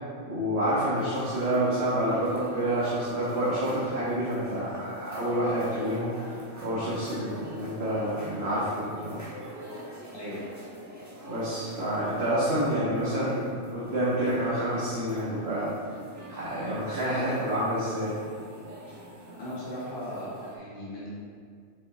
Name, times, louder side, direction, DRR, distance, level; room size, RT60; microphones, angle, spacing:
voice 1, 0.3-9.2 11.3-15.7 16.3-18.2, right 1 dB, 70° right, -10 dB, 1.9 m, -28 dB
sound 1, 0.9-20.6, right 1 dB, 15° right, 1.4 m, -45 dB
voice 2, 19.4-21.1, equal, 50° left, -8 dB, 1.6 m, -37 dB
7.5 x 7.3 x 3.0 m, 2.1 s
omnidirectional pair, 1.1 m